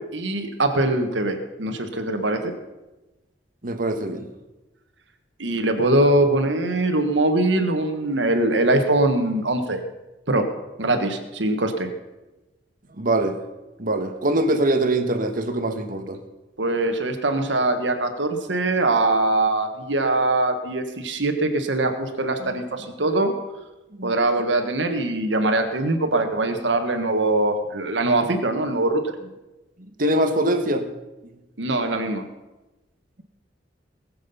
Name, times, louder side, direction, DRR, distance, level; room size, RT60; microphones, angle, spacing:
voice 1, 0.1-2.5 5.4-9.8 10.3-10.5 10.8-11.9 16.6-23.3 24.0-29.0 31.6-32.2, right 2 dB, 80° right, 5 dB, 1.6 m, -22 dB
voice 2, 3.6-4.3 12.9-13.4 13.8-16.2 22.4-22.6 23.9-24.1 30.0-30.9, right 1 dB, 50° right, 7 dB, 1.5 m, -23 dB
20.0 x 7.7 x 5.6 m, 1.1 s
head